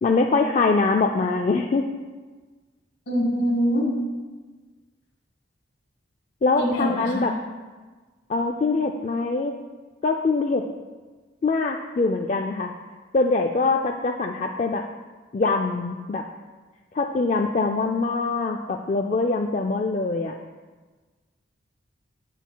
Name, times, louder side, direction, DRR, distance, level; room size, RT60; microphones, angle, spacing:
voice 1, 0.0-1.9 6.4-7.3 8.3-9.6 10.0-10.6 11.4-12.7 13.1-14.8 15.3-16.2 16.9-20.4, left 3 dB, 35° left, 3 dB, 0.3 m, -23 dB
voice 2, 3.1-3.9 6.6-7.3, equal, 65° left, -1 dB, 1.8 m, -23 dB
15.0 x 5.7 x 2.3 m, 1.4 s
head